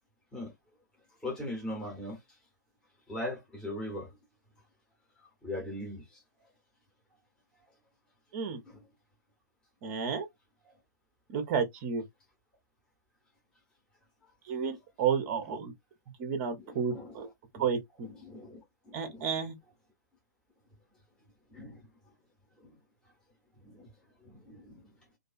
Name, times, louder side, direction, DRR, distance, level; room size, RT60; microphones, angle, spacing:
voice 1, 1.2-2.2 3.1-4.1 5.4-6.2 8.7-8.9 16.6-17.3 17.5-17.7 18.0-19.3 21.5-21.8 22.6-22.8 23.6-23.9 24.2-24.8, left 1 dB, 5° left, 0.9 m, -40 dB
voice 2, 9.8-10.3 11.3-12.0 14.5-15.7 16.2-17.3 17.6-18.1 18.9-19.5, right 6 dB, 30° right, 0.6 m, -31 dB
2.5 x 2.2 x 2.4 m
figure-of-eight pair, 120°, 10 cm